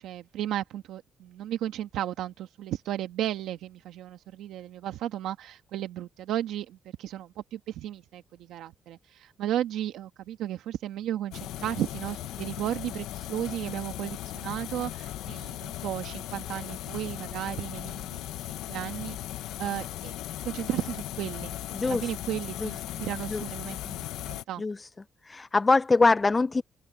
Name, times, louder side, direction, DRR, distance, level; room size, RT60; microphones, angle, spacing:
voice 1, 0.0-20.1 20.4-21.5 21.8-24.6, right 12 dB, 85° right, 1.4 m, -34 dB
sound 1, 11.3-24.4, left 14 dB, 90° left, 0.7 m, -37 dB
voice 2, 21.7-22.1 22.6-22.7 23.3-23.4 24.6-24.9 25.2-26.6, left 3 dB, 25° left, 0.4 m, -23 dB
open air
cardioid pair, 90°, 0 cm